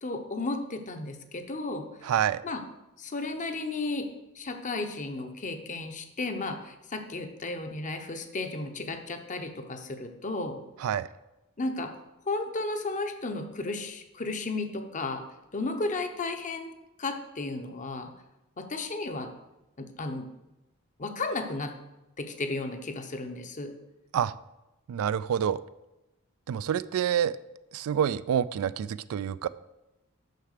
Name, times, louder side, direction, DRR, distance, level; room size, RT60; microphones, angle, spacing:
voice 1, 0.0-2.1 2.4-2.6 3.0-4.1 4.3-10.6 11.6-11.9 12.3-15.2 15.5-16.7 17.0-18.1 18.6-19.3 19.8-20.3 21.0-21.7 22.2-23.7, left 3 dB, 35° left, 6 dB, 0.8 m, -34 dB
voice 2, 2.0-2.5 10.8-11.1 24.1-24.3 24.9-25.6 26.5-27.4 27.7-29.5, right 9 dB, 70° right, 16 dB, 0.3 m, -27 dB
6.6 x 5.8 x 6.5 m, 0.97 s
head